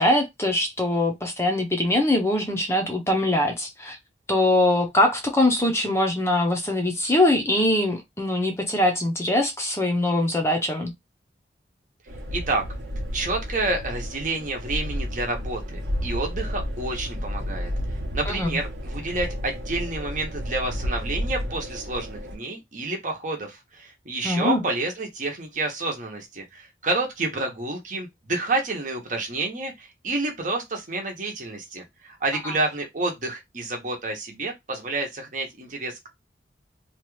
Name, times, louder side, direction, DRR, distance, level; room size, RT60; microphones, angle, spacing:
voice 1, 0.0-4.0 4.3-10.9 18.3-18.6 24.2-24.6 32.4-32.5, left 1 dB, 15° left, 0.6 m, -22 dB
sound 1, 12.1-22.4, equal, 85° right, 0.9 m, -31 dB
voice 2, 12.3-12.7 13.1-17.7 18.1-36.1, right 2 dB, 45° right, 0.9 m, -29 dB
2.9 x 2.3 x 3.1 m
head